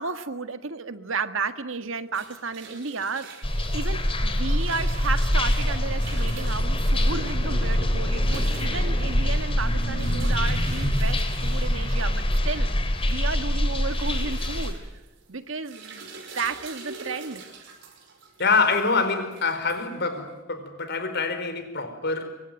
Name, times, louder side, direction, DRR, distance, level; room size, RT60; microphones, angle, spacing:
voice 1, 0.0-3.3 3.7-12.7 13.1-14.8 15.3-16.0 16.3-17.5, right 4 dB, 85° right, 10 dB, 1.7 m, -32 dB
sound 1, 1.9-20.4, right 5 dB, 65° right, 5.7 m, -45 dB
sound 2, 3.4-14.7, equal, 30° left, 3.4 m, -24 dB
voice 2, 18.4-22.4, left 4 dB, 60° left, 8 dB, 4.7 m, -25 dB
25.5 x 24.0 x 9.1 m, 1.0 s
head